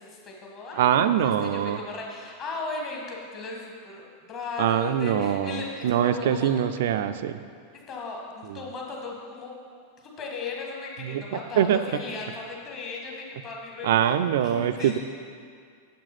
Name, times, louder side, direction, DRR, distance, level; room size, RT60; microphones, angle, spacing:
voice 1, 0.0-6.5 7.9-9.5 10.0-14.1 14.4-15.0, left 4 dB, 35° left, -1 dB, 1.9 m, -37 dB
voice 2, 0.7-1.8 4.6-7.4 8.5-8.6 11.0-11.2 11.6-11.8 13.8-15.0, right 10 dB, 55° right, 10 dB, 0.4 m, -23 dB
7.3 x 7.3 x 5.8 m, 2.2 s
figure-of-eight pair, 90°, 0 cm